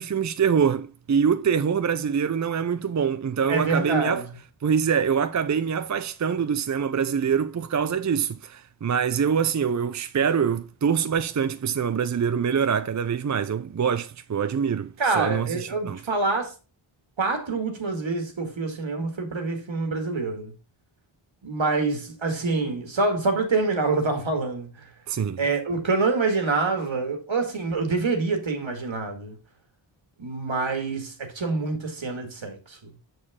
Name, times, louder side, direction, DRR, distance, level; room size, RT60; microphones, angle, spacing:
voice 1, 0.0-4.2 4.6-16.0 25.1-25.4, right 7 dB, 40° right, 0.5 m, -24 dB
voice 2, 3.5-4.2 15.0-16.5 17.2-20.5 21.4-24.9 25.4-29.4 30.2-32.8, right 3 dB, 70° right, 2.0 m, -26 dB
6.7 x 6.5 x 3.6 m
wide cardioid pair, 80°, 48 cm